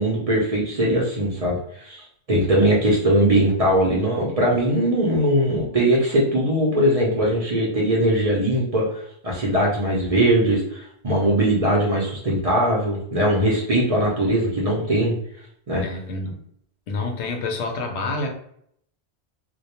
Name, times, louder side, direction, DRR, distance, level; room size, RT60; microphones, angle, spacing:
voice 1, 0.0-15.2 15.7-15.8, right 1 dB, 45° right, -4 dB, 0.5 m, -20 dB
voice 2, 15.8-16.4 16.9-18.3, left 3 dB, 85° left, 3 dB, 0.9 m, -28 dB
2.2 x 2.2 x 2.8 m, 0.69 s
omnidirectional pair, 1.1 m